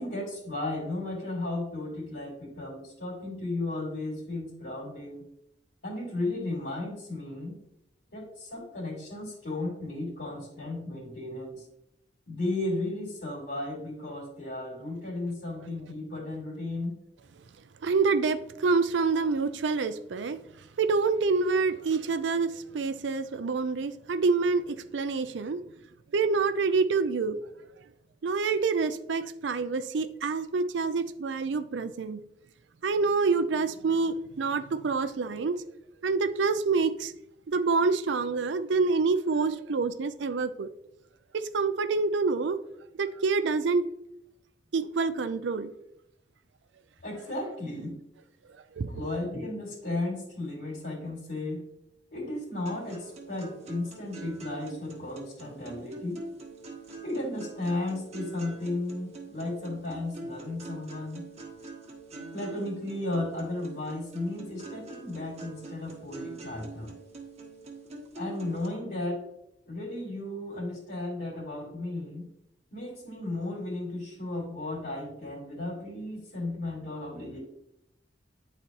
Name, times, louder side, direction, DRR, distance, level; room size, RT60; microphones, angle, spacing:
voice 1, 0.0-5.2 5.8-7.6 8.1-11.6 12.3-16.9 47.0-48.0 48.9-51.7 52.1-56.2 57.0-61.2 62.3-66.9 68.1-69.2 69.7-72.3 72.7-77.4, left 2 dB, 65° left, -5 dB, 2.5 m, -34 dB
voice 2, 17.8-20.4 20.8-25.6 26.1-27.4 28.2-32.2 32.8-35.6 36.0-37.1 37.5-40.7 41.3-42.6 43.0-43.8 44.7-45.7 48.8-48.9, right 4 dB, 85° right, 11 dB, 0.5 m, -27 dB
sound 1, 52.7-68.7, right 3 dB, 40° right, 1.2 m, -44 dB
9.9 x 4.1 x 2.9 m, 0.79 s
head